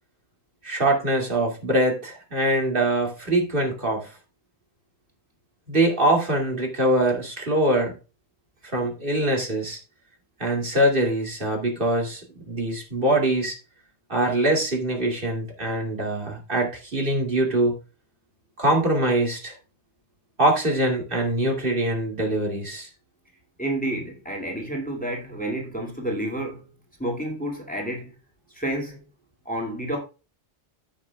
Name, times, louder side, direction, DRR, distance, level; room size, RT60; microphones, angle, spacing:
voice 1, 0.6-4.1 5.7-7.9 8.7-9.8 10.4-13.6 14.1-17.8 18.6-19.5 20.4-22.9, right 1 dB, 50° right, 2.6 m, -23 dB
voice 2, 23.6-26.7 27.0-28.1 28.5-29.0 29.5-30.0, right 1 dB, 5° left, 2.2 m, -29 dB
15.0 x 6.3 x 2.3 m
omnidirectional pair, 1.2 m